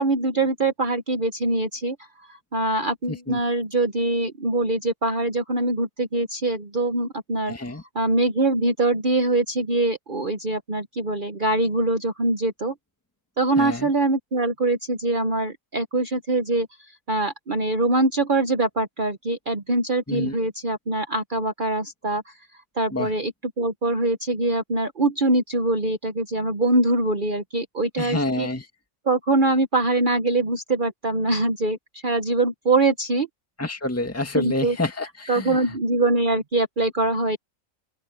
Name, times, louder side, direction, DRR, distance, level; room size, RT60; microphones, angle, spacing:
voice 1, 0.0-2.0 2.3-7.5 7.9-12.7 13.4-16.7 17.1-22.2 22.8-28.5 29.0-31.8 32.0-33.3 34.3-34.8 35.3-37.4, right 2 dB, 40° right, 1.2 m, -23 dB
voice 2, 3.1-3.4 7.5-7.8 13.6-13.9 20.1-20.4 22.9-23.1 28.0-28.7 33.6-35.8, left 2 dB, 10° left, 2.1 m, -28 dB
open air
omnidirectional pair, 1.4 m